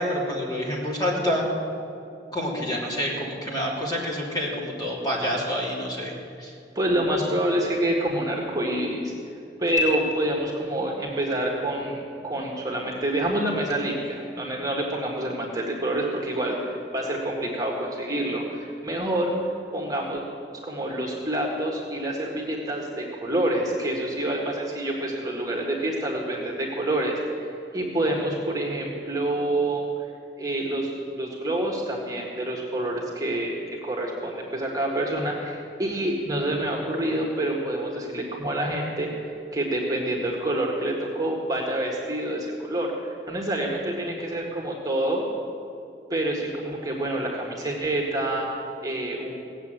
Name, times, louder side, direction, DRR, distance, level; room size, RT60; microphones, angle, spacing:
voice 1, 0.0-1.5 2.3-6.1 6.4-6.5, equal, 25° left, -4 dB, 3.1 m, -27 dB
voice 2, 6.8-9.1 9.6-19.3 19.7-20.2 20.6-27.1 27.4-29.9 30.4-30.9 31.2-45.2 46.1-49.4, right 1 dB, 20° right, -1 dB, 1.8 m, -27 dB
18.0 x 7.6 x 9.0 m, 2.6 s
head